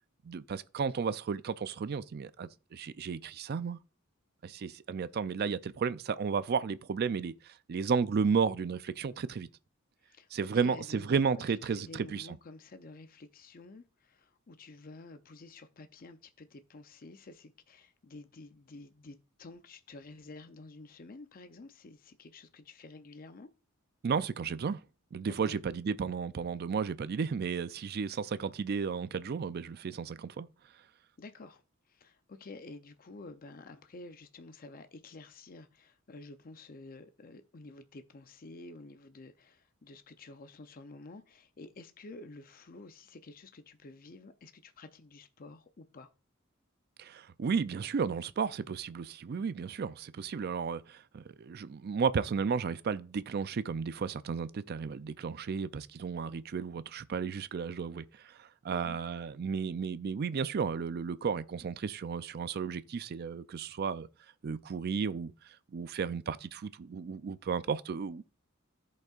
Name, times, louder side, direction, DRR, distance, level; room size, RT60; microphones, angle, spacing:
voice 1, 0.2-3.8 4.4-7.3 7.7-9.5 10.3-12.3 24.0-24.8 25.1-30.5 47.0-64.1 64.4-65.3 65.7-68.2, right 5 dB, 50° right, 0.4 m, -33 dB
voice 2, 10.0-11.2 11.5-23.5 25.3-25.6 31.2-31.6 31.9-46.1 58.7-59.0, left 3 dB, 45° left, 0.5 m, -50 dB
14.0 x 5.4 x 2.4 m
head